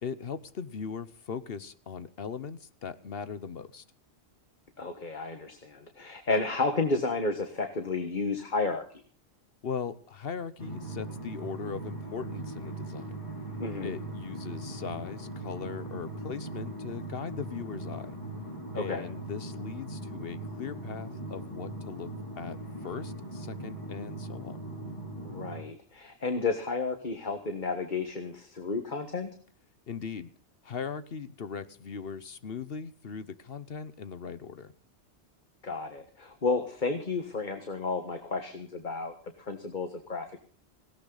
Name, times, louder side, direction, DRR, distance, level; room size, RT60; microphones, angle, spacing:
voice 1, 0.0-3.8 9.6-13.1 13.8-18.2 18.7-22.1 22.4-24.6 29.9-30.3 30.6-34.7, left 6 dB, 60° left, 14 dB, 1.1 m, -39 dB
voice 2, 4.8-8.8 13.6-13.9 18.7-19.0 25.2-29.3 35.6-40.4, left 3 dB, 45° left, 6 dB, 1.6 m, -32 dB
sound 1, 10.6-25.6, right 2 dB, 30° left, 3.4 m, -40 dB
18.0 x 17.5 x 4.0 m, 0.42 s
omnidirectional pair, 1.2 m